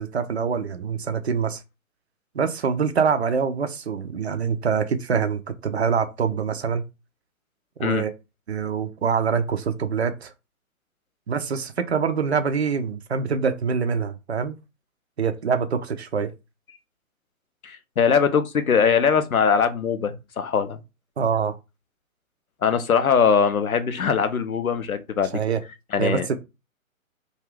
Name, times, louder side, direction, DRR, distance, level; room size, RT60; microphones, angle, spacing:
voice 1, 0.0-1.6 2.3-6.8 7.8-8.1 8.5-10.3 11.3-14.6 15.2-16.3 21.2-21.6 25.3-25.6 26.0-26.3, right 6 dB, 50° right, 0.5 m, -25 dB
voice 2, 17.6-20.8 22.6-25.3 25.9-26.3, left 6 dB, 85° left, 0.6 m, -21 dB
2.4 x 2.3 x 3.2 m
figure-of-eight pair, 130°, 42 cm